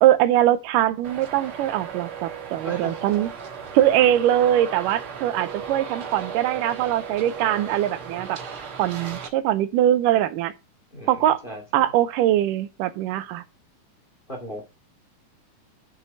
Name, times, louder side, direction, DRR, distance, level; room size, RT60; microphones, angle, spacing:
voice 1, 0.0-3.3 3.7-8.4 8.8-10.5 11.1-11.4 11.7-13.4, right 12 dB, 80° right, 2.1 m, -22 dB
Traffic noise roadway noise, 1.0-9.3, right 6 dB, 55° right, 1.7 m, -36 dB
voice 2, 10.9-11.6 14.3-14.6, right 1 dB, 20° left, 1.9 m, -36 dB
6.4 x 6.4 x 5.3 m
omnidirectional pair, 3.9 m